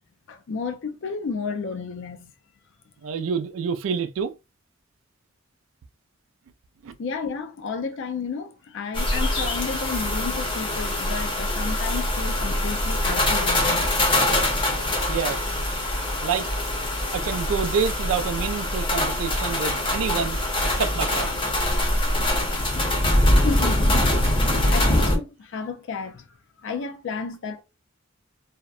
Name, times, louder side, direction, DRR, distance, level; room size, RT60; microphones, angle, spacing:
voice 1, 0.3-2.3 7.0-13.9 23.2-24.0 24.4-26.3 26.6-27.6, left 5 dB, 65° left, 0.4 m, -32 dB
voice 2, 3.0-4.3 6.8-6.9 15.1-15.6 16.2-16.5 17.1-20.4 20.7-21.3, right 6 dB, 75° right, 0.3 m, -27 dB
sound 1, 8.9-25.2, left 1 dB, 25° left, 0.7 m, -23 dB
2.8 x 2.1 x 2.3 m
head